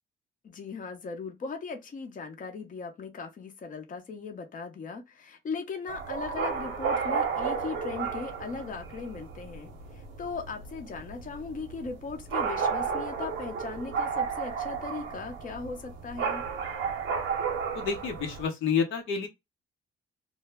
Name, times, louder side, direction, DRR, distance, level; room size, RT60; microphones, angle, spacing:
voice 1, 0.4-16.4, left 4 dB, 40° left, 0.7 m, -38 dB
sound 1, 5.9-18.5, right 6 dB, 90° right, 0.6 m, -33 dB
voice 2, 17.7-19.3, left 6 dB, 80° left, 0.7 m, -29 dB
2.0 x 2.0 x 3.3 m
cardioid pair, 90°, 20 cm